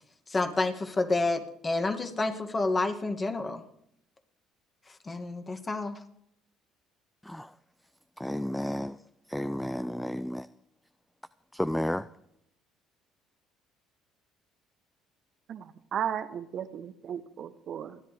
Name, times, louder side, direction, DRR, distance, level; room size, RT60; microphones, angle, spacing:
voice 1, 0.3-3.6 4.9-6.0, left 2 dB, 30° left, 4 dB, 2.1 m, -29 dB
voice 2, 7.2-7.5 8.2-9.0 9.3-10.5 11.5-12.1, left 1 dB, 5° left, 14 dB, 0.5 m, -32 dB
voice 3, 15.5-18.0, right 9 dB, 55° right, 12 dB, 0.9 m, -35 dB
29.5 x 10.5 x 3.3 m, 0.74 s
hypercardioid pair, 65°, 0 cm